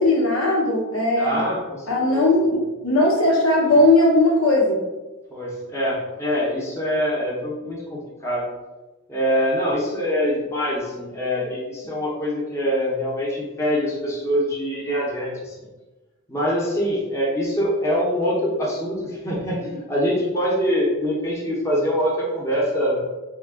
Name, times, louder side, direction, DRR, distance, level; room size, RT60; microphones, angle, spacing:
voice 1, 0.0-1.5 1.9-4.8, left 2 dB, 80° left, -3 dB, 1.0 m, -18 dB
voice 2, 1.1-2.3 5.3-8.4 9.1-15.7 16.3-23.0, equal, 15° left, -5 dB, 0.8 m, -24 dB
3.6 x 2.3 x 3.6 m, 1.1 s
head